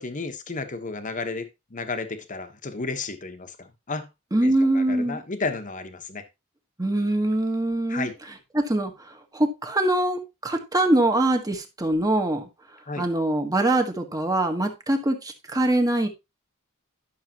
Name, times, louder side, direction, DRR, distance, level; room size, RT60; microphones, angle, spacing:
voice 1, 0.0-1.5 1.7-4.1 4.4-6.2 7.9-8.1 12.9-13.1, left 3 dB, 40° left, 1.1 m, -32 dB
voice 2, 4.3-5.2 6.8-8.1 8.5-12.5 13.0-16.1, right 1 dB, 15° right, 1.4 m, -23 dB
11.5 x 6.5 x 2.9 m
head